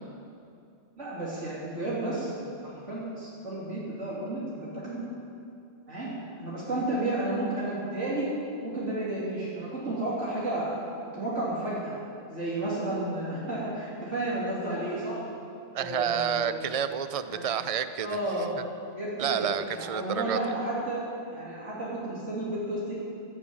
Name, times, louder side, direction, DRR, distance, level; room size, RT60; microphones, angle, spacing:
voice 1, 1.0-5.0 5.9-8.3 8.6-10.7 11.1-11.9 12.3-15.2 15.7-16.8 17.3-17.4 18.0-18.5 18.9-21.0 21.3-23.0, right 2 dB, 70° right, -8 dB, 3.4 m, -32 dB
voice 2, 15.7-18.2 19.2-20.4, right 8 dB, 40° right, 11 dB, 0.5 m, -29 dB
15.0 x 9.8 x 8.7 m, 2.4 s
omnidirectional pair, 1.3 m